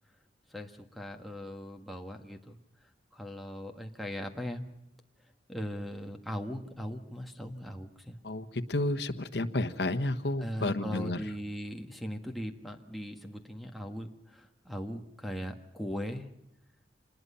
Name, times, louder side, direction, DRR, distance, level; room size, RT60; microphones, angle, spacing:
voice 1, 0.5-4.6 5.5-8.2 10.4-16.3, equal, ahead, 2 dB, 1.6 m, -39 dB
voice 2, 8.2-11.2, left 2 dB, 65° left, 8 dB, 1.3 m, -31 dB
27.0 x 20.5 x 5.7 m, 0.84 s
head